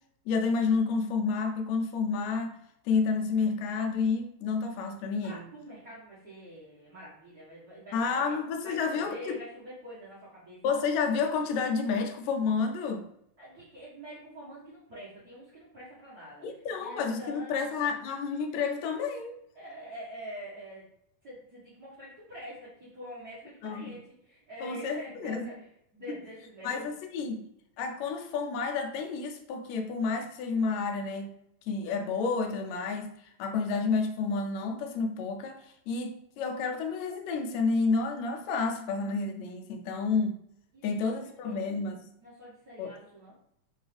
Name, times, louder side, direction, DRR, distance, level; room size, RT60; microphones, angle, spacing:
voice 1, 0.3-2.6 2.9-5.4 7.9-9.4 10.6-13.1 16.4-19.4 23.6-24.0 24.6-25.5 26.1-26.2 26.6-27.5 27.8-31.3 31.7-33.1 33.4-40.4 40.8-42.0 42.8-42.9, left 4 dB, 80° left, 4 dB, 1.8 m, -30 dB
voice 2, 5.2-8.4 8.6-10.6 13.4-17.9 19.5-20.9 21.2-25.7 25.9-26.8 40.7-41.8 42.2-43.4, equal, 50° right, -8 dB, 1.2 m, -46 dB
4.6 x 2.7 x 3.2 m, 0.75 s
omnidirectional pair, 3.3 m